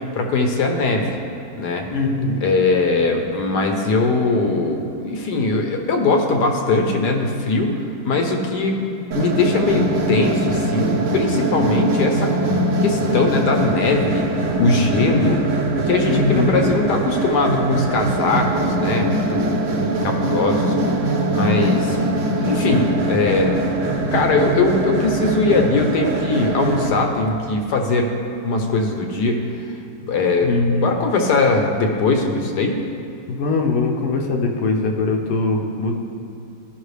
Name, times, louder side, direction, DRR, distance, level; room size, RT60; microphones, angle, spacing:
voice 1, 0.1-1.2 1.6-1.9 2.4-7.7 8.0-8.8 9.1-12.3 12.8-14.2 14.6-15.4 15.9-20.8 21.3-22.0 22.4-23.6 24.1-28.1 28.4-29.4 30.1-30.5 30.8-32.8, left 3 dB, 60° left, 3 dB, 1.2 m, -20 dB
voice 2, 1.9-2.4 16.0-16.6 30.4-30.9 33.3-35.9, left 3 dB, 80° left, 1 dB, 1.7 m, -21 dB
sound 1, 9.1-26.9, right 1 dB, 75° right, 0.7 m, -22 dB
15.0 x 5.8 x 3.3 m, 2.8 s
omnidirectional pair, 2.4 m